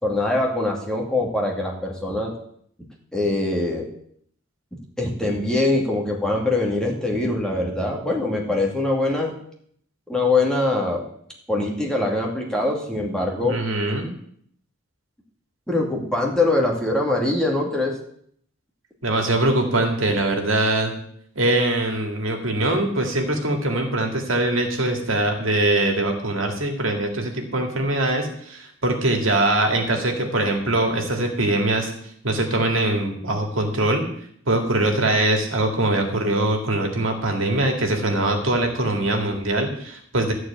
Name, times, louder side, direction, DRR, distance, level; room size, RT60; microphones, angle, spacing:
voice 1, 0.0-2.3 3.1-3.9 5.0-9.3 10.1-11.1 11.5-13.6 15.7-18.0, left 2 dB, 5° left, -1 dB, 2.2 m, -23 dB
voice 2, 13.4-14.1 19.0-20.9 21.4-31.9 32.2-34.0 34.5-40.3, right 2 dB, 70° right, 3 dB, 2.2 m, -22 dB
13.0 x 4.7 x 8.6 m, 0.65 s
head